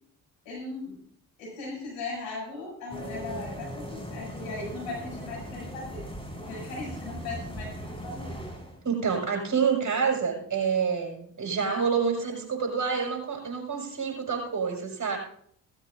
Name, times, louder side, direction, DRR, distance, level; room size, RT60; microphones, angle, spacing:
voice 1, 0.4-1.0 1.4-6.0 6.3-8.4, left 3 dB, 85° left, -3 dB, 7.6 m, -38 dB
sound 1, 2.9-8.8, equal, 10° left, 6.0 m, -39 dB
voice 2, 8.8-15.2, right 6 dB, 40° right, 0 dB, 6.6 m, -27 dB
17.5 x 15.5 x 2.7 m, 0.62 s
hypercardioid pair, 45°, 44 cm